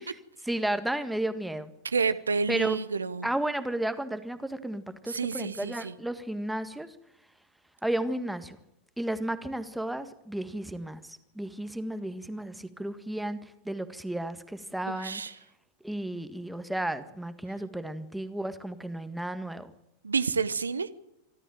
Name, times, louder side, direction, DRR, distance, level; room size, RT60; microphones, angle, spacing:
voice 1, 0.4-1.7 2.5-2.8 3.2-6.9 7.8-8.6 9.0-15.2 15.8-19.7, right 1 dB, 5° right, 10 dB, 1.7 m, -33 dB
voice 2, 1.8-3.3 5.1-5.9 14.9-15.3 20.0-20.9, right 5 dB, 75° right, 13 dB, 0.9 m, -29 dB
26.0 x 13.0 x 9.0 m, 0.89 s
figure-of-eight pair, 90°, 0 cm